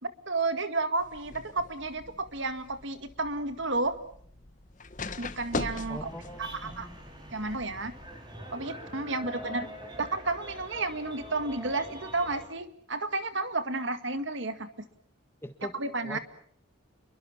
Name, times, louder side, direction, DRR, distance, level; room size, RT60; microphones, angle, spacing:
voice 1, 0.0-4.0 5.2-6.1 6.4-6.9 7.3-7.9 8.5-9.7 10.0-14.7 15.7-16.2, right 3 dB, 60° right, 10 dB, 2.0 m, -32 dB
sound 1, 1.0-8.1, left 3 dB, 35° left, 1.5 m, -41 dB
sound 2, 5.4-12.5, equal, 20° right, 5.8 m, -45 dB
voice 2, 5.9-7.0 8.6-9.9 15.4-16.2, equal, 10° left, 9 dB, 1.8 m, -44 dB
29.0 x 23.0 x 7.2 m, 0.62 s
head